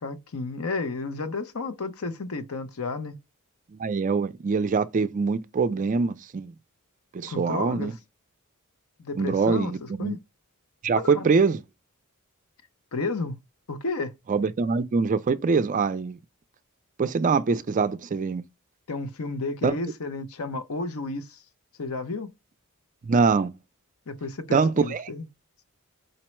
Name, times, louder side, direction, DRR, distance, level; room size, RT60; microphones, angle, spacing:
voice 1, 0.0-3.2 7.3-7.9 9.0-10.2 11.0-11.3 12.9-13.4 13.7-14.1 18.9-21.4 21.8-22.3 24.1-25.2, left 3 dB, 70° left, 0.7 m, -32 dB
voice 2, 3.7-6.5 7.1-7.9 9.2-10.2 10.8-11.6 14.3-16.2 17.0-18.4 19.6-19.8 23.0-23.5 24.5-25.0, right 4 dB, 35° right, 0.4 m, -24 dB
5.2 x 2.0 x 4.4 m
head